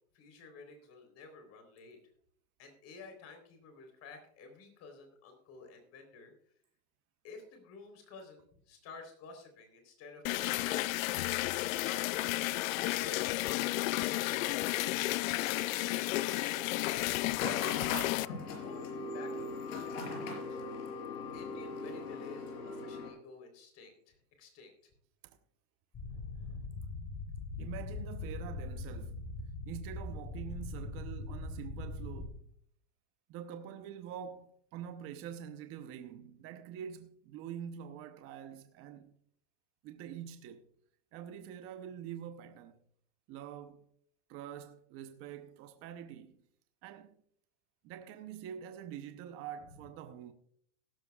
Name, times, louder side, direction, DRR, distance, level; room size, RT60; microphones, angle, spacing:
voice 1, 0.1-2.0 2.6-6.3 7.2-10.9 11.5-15.0 15.7-17.8 18.2-20.6 21.3-24.7 26.0-26.8 29.3-29.4 30.4-30.5, left 4 dB, 35° left, 3.7 m, -52 dB
sound 1, 10.2-18.3, left 18 dB, 65° left, 0.5 m, -32 dB
sound 2, 17.4-23.1, left 3 dB, 85° left, 5.2 m, -40 dB
sound 3, 25.9-32.3, left 3 dB, 15° left, 1.0 m, -41 dB
voice 2, 27.6-29.3 29.7-32.4 33.3-39.1 39.8-40.7 41.1-42.8 43.3-43.8 44.3-46.4 46.8-47.1 47.8-50.3, right 9 dB, 30° right, 0.8 m, -45 dB
16.0 x 12.5 x 2.3 m
supercardioid pair, 150°, 45 cm